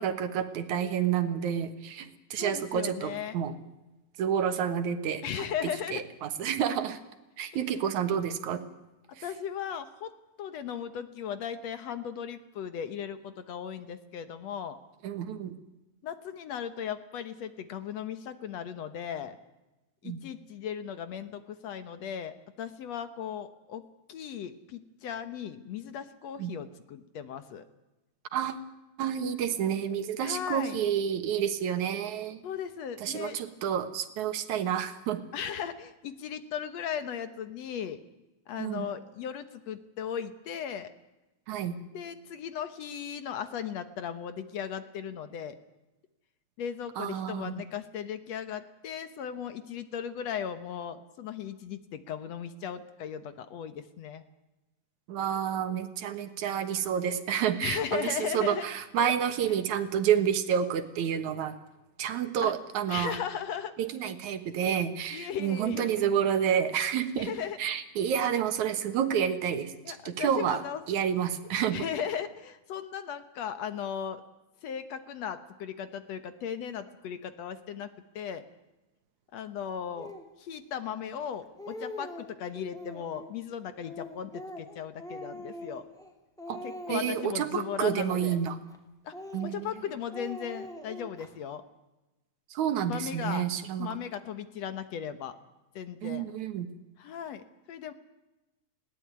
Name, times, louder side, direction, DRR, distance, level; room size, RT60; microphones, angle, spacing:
voice 1, 0.0-3.5 4.2-5.2 5.9-7.0 7.4-8.6 15.0-15.6 20.0-20.2 26.4-26.5 28.3-28.6 29.0-32.4 33.0-35.2 38.6-38.9 41.5-41.8 47.0-47.6 55.1-61.5 62.0-63.2 63.8-67.3 67.6-70.6 70.9-71.8 86.5-86.6 86.9-88.6 89.3-89.7 92.5-93.9 96.0-96.7, right 9 dB, 70° right, 10 dB, 2.7 m, -29 dB
voice 2, 2.4-3.4 5.2-6.0 7.7-7.8 9.2-10.1 10.4-14.8 16.0-19.4 20.0-27.7 30.2-30.8 32.4-33.4 35.3-38.0 38.5-40.9 41.9-45.6 46.6-54.2 57.6-58.7 59.0-59.1 59.5-59.6 62.4-62.5 62.9-63.7 64.0-64.1 65.1-66.1 67.2-67.6 69.8-70.8 71.7-74.2 74.6-77.9 78.2-78.4 79.3-80.1 80.4-85.9 86.6-88.4 89.0-89.1 89.5-91.6 92.9-93.5 93.8-95.3 95.8-96.3 97.0-97.9, left 8 dB, 65° left, 11 dB, 2.1 m, -37 dB
Speech, 80.0-80.3 81.0-81.1 81.4-82.3 82.7-83.3 83.8-86.1 86.4-87.3 87.8-88.8 89.1-89.8 90.1-91.3, left 1 dB, ahead, 2.6 m, -43 dB
20.0 x 17.5 x 9.4 m, 1.0 s
omnidirectional pair, 3.5 m